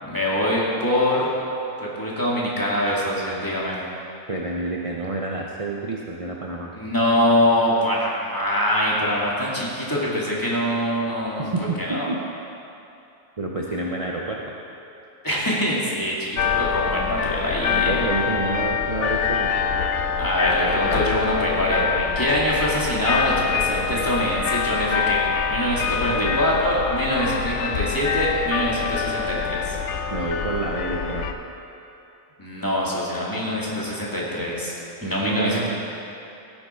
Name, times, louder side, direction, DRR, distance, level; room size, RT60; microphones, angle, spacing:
voice 1, 0.0-1.3 1.8-3.8 6.7-11.5 11.8-12.1 15.2-18.0 20.2-29.8 32.4-34.7 35.0-35.7, equal, 15° left, -6 dB, 2.3 m, -24 dB
voice 2, 4.3-6.7 11.4-12.2 13.4-14.4 17.7-19.6 26.1-26.4 30.1-31.3 35.0-35.7, right 2 dB, 40° right, -2 dB, 0.5 m, -28 dB
sound 1, 16.4-31.3, left 6 dB, 65° left, 0.8 m, -25 dB
15.0 x 8.9 x 4.5 m, 2.8 s
omnidirectional pair, 1.6 m